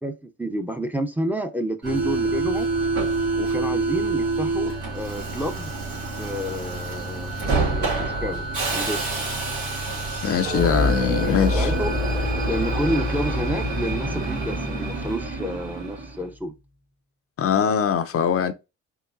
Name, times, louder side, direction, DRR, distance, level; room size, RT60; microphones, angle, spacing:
voice 1, 0.0-2.7 3.3-5.7 6.2-9.0 11.5-12.0 12.4-16.5, equal, 5° right, 0.6 m, -30 dB
Subway metro underground, 1.8-16.2, right 3 dB, 85° right, 2.2 m, -28 dB
voice 2, 10.2-11.7 17.4-18.5, left 8 dB, 50° left, 0.5 m, -22 dB
sound 1, 10.4-16.3, left 1 dB, 40° right, 2.1 m, -27 dB
4.6 x 3.1 x 2.5 m
cardioid pair, 90°, 30 cm